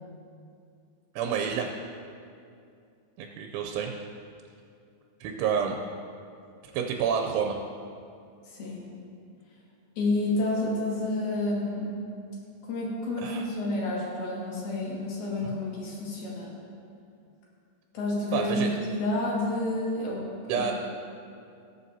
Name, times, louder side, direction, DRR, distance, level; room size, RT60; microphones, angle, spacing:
voice 1, 1.1-1.7 3.2-3.9 5.2-5.8 6.7-7.6 13.2-13.5 15.4-15.5 18.3-18.8 20.5-20.7, right 7 dB, 90° right, 2 dB, 3.1 m, -29 dB
voice 2, 8.5-8.9 10.0-12.0 12.6-16.5 17.9-20.7, left 2 dB, 60° left, -5 dB, 3.8 m, -30 dB
19.5 x 7.7 x 2.8 m, 2.4 s
omnidirectional pair, 5.3 m